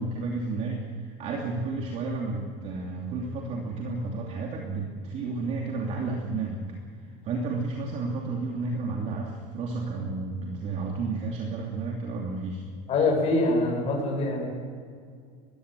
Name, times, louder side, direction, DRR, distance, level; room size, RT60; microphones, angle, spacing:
voice 1, 0.0-6.6 7.2-12.7, right 3 dB, 40° right, -1 dB, 2.9 m, -32 dB
voice 2, 12.9-14.5, left 2 dB, 35° left, 0 dB, 7.7 m, -24 dB
21.5 x 15.5 x 9.2 m, 2.1 s
supercardioid pair, 150°, 19 cm